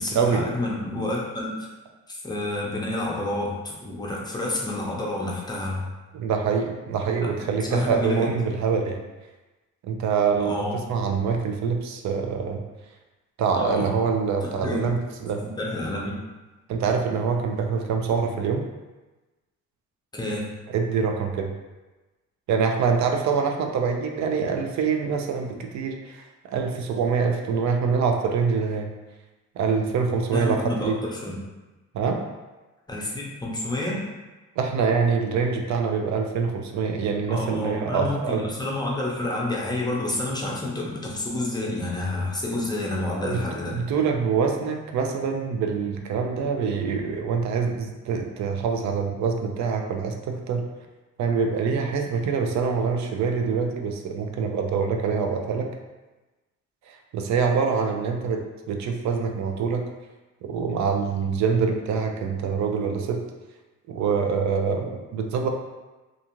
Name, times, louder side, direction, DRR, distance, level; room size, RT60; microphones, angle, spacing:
voice 1, 0.0-1.5 2.1-5.8 7.4-8.3 10.4-10.9 13.5-13.9 14.4-14.8 15.4-16.2 20.1-20.5 30.3-31.4 32.9-34.0 37.3-43.7, left 2 dB, 15° left, -3 dB, 0.6 m, -29 dB
voice 2, 6.1-9.0 9.8-10.6 10.9-12.6 13.4-15.4 16.7-18.6 20.7-21.5 22.5-26.2 26.5-28.9 29.6-31.0 31.9-32.2 34.6-38.5 43.1-43.4 43.7-50.7 51.2-55.7 56.9-59.8 60.4-63.2 63.9-65.5, right 5 dB, 70° right, 4 dB, 0.5 m, -25 dB
2.5 x 2.4 x 2.9 m, 1.1 s
cardioid pair, 90°, 30 cm